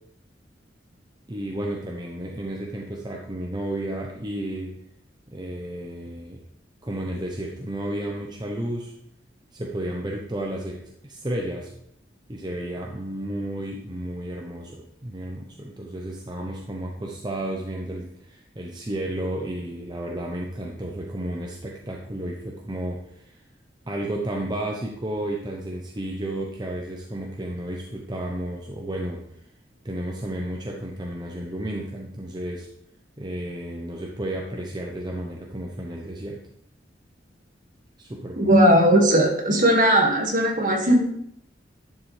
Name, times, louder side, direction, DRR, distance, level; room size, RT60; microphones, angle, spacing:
voice 1, 1.3-4.7 5.3-6.4 6.8-8.9 9.5-11.7 12.3-23.4 23.9-29.2 29.8-32.7 33.2-36.4 38.0-38.6, right 1 dB, 25° right, -1 dB, 0.8 m, -32 dB
voice 2, 38.4-41.0, right 1 dB, 45° right, 0 dB, 1.9 m, -18 dB
11.0 x 6.7 x 3.3 m, 0.73 s
head